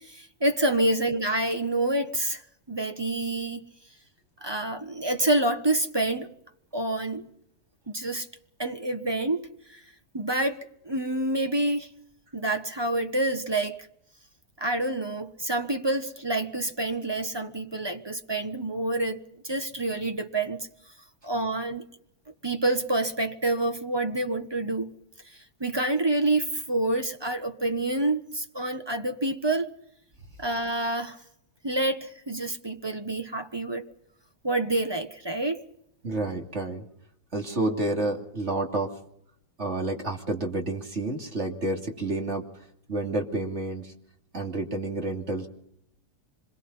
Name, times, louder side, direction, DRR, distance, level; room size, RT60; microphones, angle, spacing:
voice 1, 0.0-2.4 2.7-3.7 4.4-6.3 6.7-7.3 7.9-8.3 8.6-9.8 10.1-10.6 10.8-11.9 12.3-13.8 14.6-20.7 21.2-21.8 22.4-24.9 25.2-29.7 30.4-31.2 31.6-33.9 34.4-35.6, right 2 dB, 15° right, 1.3 m, -27 dB
voice 2, 36.0-36.8 37.3-38.9 39.6-42.4 42.9-43.9 44.3-45.5, right 2 dB, 45° right, 3.1 m, -29 dB
25.5 x 21.5 x 5.6 m
omnidirectional pair, 1.7 m